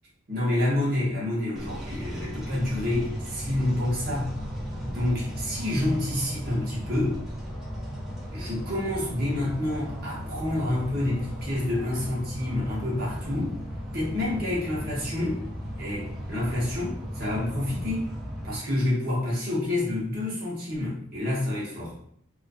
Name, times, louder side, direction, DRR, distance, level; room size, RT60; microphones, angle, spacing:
voice 1, 0.3-4.3 4.8-7.2 8.3-13.6 13.9-15.4 15.8-18.1 18.4-21.9, left 1 dB, 45° right, -6 dB, 0.9 m, -28 dB
sound 1, 1.5-18.6, equal, ahead, 0.3 m, -36 dB
2.5 x 2.3 x 2.3 m, 0.66 s
head